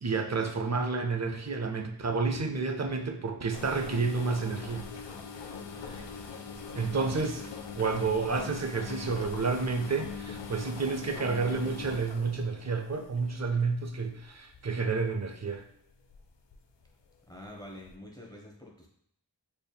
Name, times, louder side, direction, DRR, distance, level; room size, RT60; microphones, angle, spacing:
voice 1, 0.0-4.9 5.8-6.0 6.7-7.5 7.8-15.6, right 4 dB, 40° right, 5 dB, 0.5 m, -30 dB
sound 1, 3.5-13.7 14.4-14.6 15.1-15.3 16.1-16.6 16.9-17.0 17.9-18.0, left 5 dB, 75° left, 0.5 m, -42 dB
voice 2, 17.3-18.9, left 1 dB, 10° left, -1 dB, 0.8 m, -46 dB
4.1 x 3.4 x 2.2 m, 0.69 s
wide cardioid pair, 40°, 42 cm